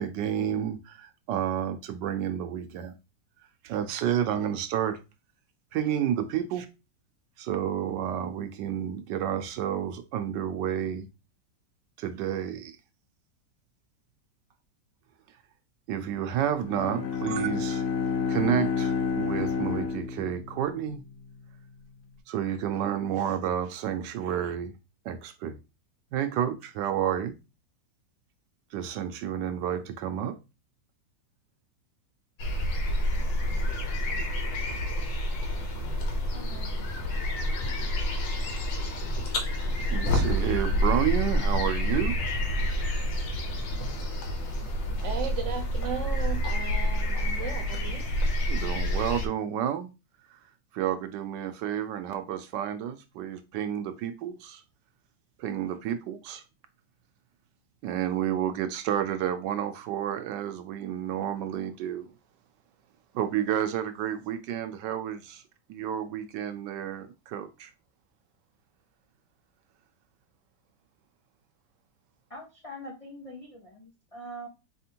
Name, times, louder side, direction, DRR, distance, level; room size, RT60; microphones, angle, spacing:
voice 1, 0.0-2.9 3.6-5.0 5.7-6.7 7.4-11.1 12.0-12.8 15.9-17.8 18.3-21.0 22.3-24.7 25.0-25.6 26.1-27.3 28.7-30.4 39.9-42.6 48.5-49.9 50.3-50.4 50.7-54.6 55.4-56.4 57.8-62.1 63.1-65.4 65.7-67.7, right 10 dB, 75° right, 1.2 m, -30 dB
Bowed string instrument, 16.5-20.9, left 6 dB, 70° left, 1.0 m, -29 dB
sound 1, 32.4-49.3, equal, 85° left, 1.6 m, -28 dB
voice 2, 36.3-36.8 72.3-74.5, equal, 40° left, 0.4 m, -43 dB
voice 3, 45.0-48.0, right 6 dB, 55° right, 0.9 m, -36 dB
4.2 x 3.4 x 2.8 m
omnidirectional pair, 2.0 m